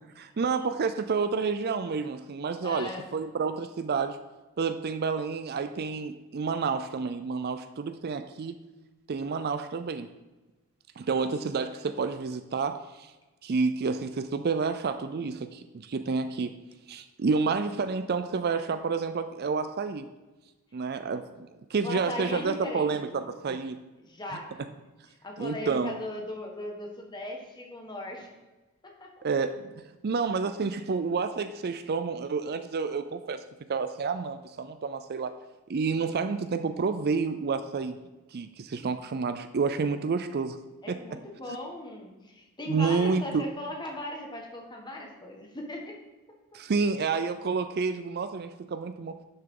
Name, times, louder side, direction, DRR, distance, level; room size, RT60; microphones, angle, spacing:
voice 1, 0.2-4.2 4.6-8.6 9.1-10.1 11.0-13.1 13.4-16.5 16.9-20.1 20.7-23.8 25.4-25.9 29.2-29.7 30.0-33.4 33.7-35.3 35.7-38.0 38.3-40.6 40.9-41.2 42.7-43.4 46.5-49.2, right 4 dB, 45° right, 10 dB, 0.4 m, -29 dB
voice 2, 2.6-3.0 21.8-23.1 24.0-24.5 25.2-28.3 28.8-29.2 40.8-46.0, left 1 dB, 20° left, 1 dB, 1.5 m, -38 dB
11.5 x 6.6 x 3.8 m, 1.1 s
head